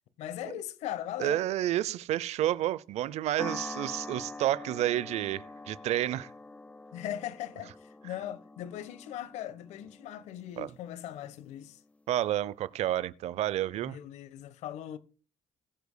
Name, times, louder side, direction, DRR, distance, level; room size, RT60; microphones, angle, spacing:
voice 1, 0.2-1.4 6.9-11.8 13.8-15.0, left 11 dB, 85° left, 1.2 m, -39 dB
voice 2, 1.2-6.3 10.6-10.7 12.1-14.0, right 13 dB, 75° right, 0.6 m, -30 dB
sound 1, 3.4-11.9, left 2 dB, 10° left, 1.1 m, -45 dB
21.0 x 8.2 x 2.2 m
cardioid pair, 90°, 11 cm